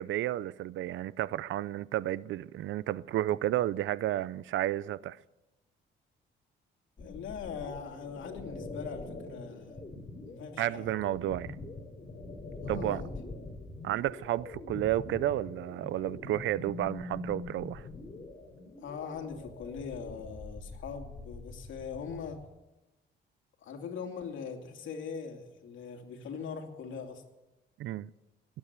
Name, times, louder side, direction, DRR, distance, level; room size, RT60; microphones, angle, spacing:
voice 1, 0.0-5.2 10.6-11.6 12.7-13.0 13.8-17.8 27.8-28.1, right 13 dB, 75° right, 0.6 m, -32 dB
voice 2, 7.0-9.8 10.2-10.9 12.6-13.1 18.8-22.5 23.6-27.2, left 6 dB, 75° left, 2.7 m, -41 dB
sound 1, 7.0-22.4, left 2 dB, 30° left, 3.5 m, -44 dB
20.0 x 8.8 x 8.2 m
cardioid pair, 90°, 20 cm